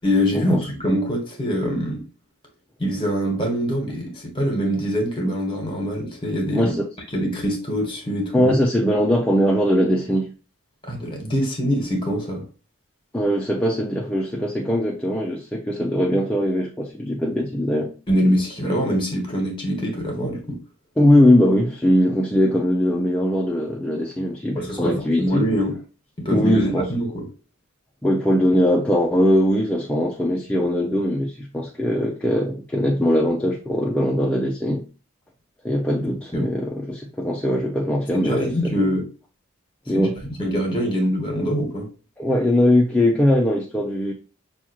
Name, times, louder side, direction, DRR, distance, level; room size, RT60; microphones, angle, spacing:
voice 1, 0.0-2.0 2.8-6.7 7.1-8.5 10.8-12.4 18.1-20.6 24.5-25.7 26.2-27.2 36.3-36.4 38.1-39.0 39.9-40.1 40.4-41.9, equal, 25° left, 1.3 m, -24 dB
voice 2, 6.5-6.8 8.3-10.3 13.1-17.9 21.0-25.5 26.3-26.8 28.0-34.8 35.6-38.5 39.9-40.2 42.2-44.1, left 1 dB, 5° left, 0.4 m, -20 dB
5.7 x 2.4 x 2.9 m
head